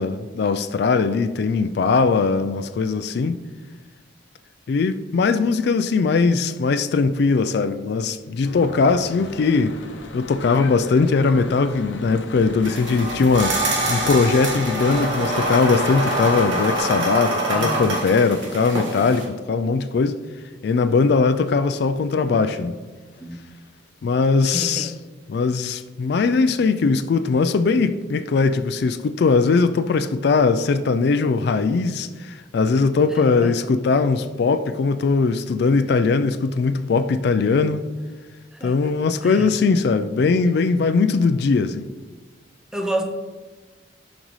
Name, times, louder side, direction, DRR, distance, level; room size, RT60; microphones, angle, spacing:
voice 1, 0.0-3.4 4.7-9.7 10.1-13.6 13.9-20.2 20.6-22.7 24.0-24.9 25.3-37.9 38.6-41.9, left 4 dB, 60° left, 0.3 m, -20 dB
Church bell / Traffic noise roadway noise, 8.4-16.8, left 2 dB, 75° left, 0.8 m, -36 dB
sound 1, 12.6-19.2, right 1 dB, 85° right, 1.6 m, -25 dB
voice 2, 17.5-17.9 23.2-23.4 24.5-24.9 33.4-33.5 38.5-38.7 39.2-39.5 42.7-43.0, right 1 dB, 5° right, 0.6 m, -28 dB
11.0 x 5.2 x 3.1 m
head